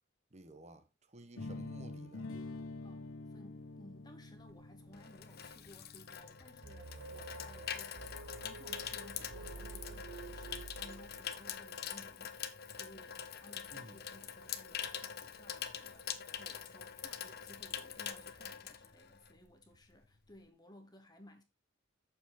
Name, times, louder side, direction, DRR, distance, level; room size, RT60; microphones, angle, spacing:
voice 1, 0.3-2.3 13.7-14.0, right 1 dB, 35° right, 1.2 m, -54 dB
sound 1, 1.4-7.3, left 2 dB, 80° left, 1.0 m, -47 dB
voice 2, 2.8-12.4 12.7-21.4, left 1 dB, 20° left, 1.2 m, -59 dB
Water tap faucet / Sink (filling or washing), 4.4-19.5 19.7-20.0, left 8 dB, 50° left, 0.9 m, -44 dB
sound 2, 6.6-11.6, right 3 dB, 75° right, 1.2 m, -49 dB
8.3 x 6.9 x 3.9 m
head